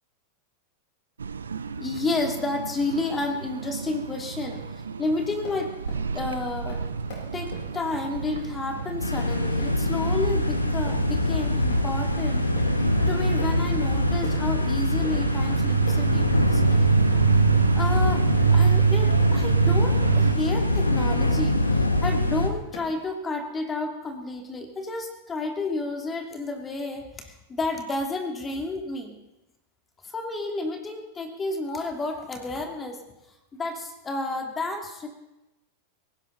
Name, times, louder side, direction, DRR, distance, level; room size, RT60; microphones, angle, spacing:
sound 1, 1.2-20.3, right 6 dB, 70° right, 0.7 m, -27 dB
voice 1, 1.8-5.7 6.1-6.8 7.3-12.5 13.1-17.1 17.7-29.2 30.0-33.0 33.5-35.1, left 2 dB, 20° left, 5 dB, 2.6 m, -31 dB
sound 2, 3.7-3.9 4.3-4.7 5.1-22.4 22.7-23.1, left 4 dB, 50° left, 6.4 m, -44 dB
sound 3, 9.0-22.5, left 2 dB, 85° left, 1.3 m, -24 dB
18.5 x 17.0 x 4.0 m, 0.97 s
figure-of-eight pair, 90°, 0 cm